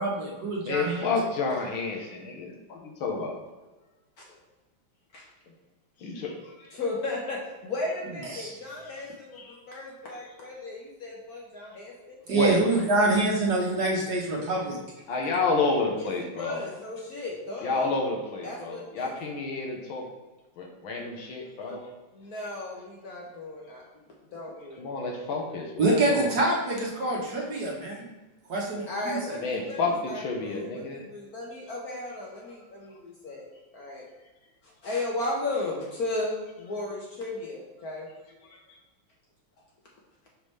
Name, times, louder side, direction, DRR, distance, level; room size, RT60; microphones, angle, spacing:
voice 1, 0.0-1.1 8.3-8.5 12.3-14.8 25.8-28.1 28.5-29.4, right 2 dB, 55° right, -3 dB, 1.4 m, -26 dB
voice 2, 0.6-3.4 6.0-6.7 9.4-9.6 12.3-12.8 15.1-16.6 17.6-20.0 20.6-21.8 24.8-26.3 29.4-31.1 38.5-38.6, left 3 dB, 75° left, 1 dB, 1.6 m, -30 dB
voice 3, 5.1-5.5 6.7-12.2 16.0-17.9 18.4-19.1 21.7-21.8 22.1-24.9 25.2-25.4 28.9-33.5 33.7-34.1 34.6-38.1, left 2 dB, 55° left, -2 dB, 1.1 m, -35 dB
5.8 x 5.2 x 3.2 m, 1.2 s
omnidirectional pair, 2.3 m